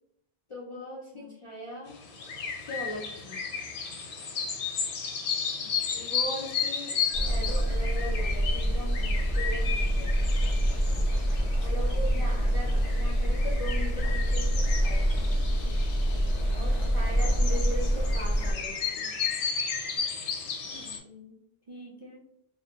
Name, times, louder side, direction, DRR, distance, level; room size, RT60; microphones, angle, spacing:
voice 1, 0.5-2.0 2.6-3.4 5.4-5.6 5.9-7.0 7.3-10.2 11.6-15.4 16.6-19.2, equal, 50° left, -4 dB, 0.4 m, -40 dB
sound 1, 1.9-21.0, left 6 dB, 80° left, 0.8 m, -34 dB
voice 2, 5.4-5.8 11.6-12.4 16.6-17.2 20.6-21.4 21.7-22.2, equal, 50° right, -5 dB, 0.3 m, -50 dB
sound 2, 7.1-18.5, equal, 15° right, 0.7 m, -26 dB
2.5 x 2.1 x 2.8 m, 0.75 s
omnidirectional pair, 1.1 m